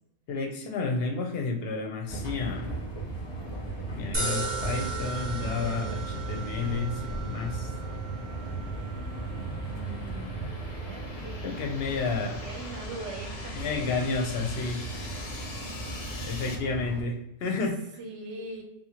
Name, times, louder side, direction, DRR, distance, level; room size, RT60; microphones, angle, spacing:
voice 1, 0.3-2.7 3.9-7.7 11.4-12.4 13.5-14.9 16.2-17.8, left 4 dB, 60° left, 2 dB, 0.7 m, -31 dB
sound 1, 2.1-17.0, right 2 dB, 25° left, 0.8 m, -36 dB
sound 2, 4.1-16.5, right 3 dB, 30° right, 0.6 m, -40 dB
sound 3, 7.6-16.6, left 3 dB, 80° left, 0.3 m, -45 dB
voice 2, 9.7-14.1 18.0-18.6, right 2 dB, 70° right, 2 dB, 0.9 m, -43 dB
2.8 x 2.5 x 2.8 m, 0.87 s
omnidirectional pair, 1.3 m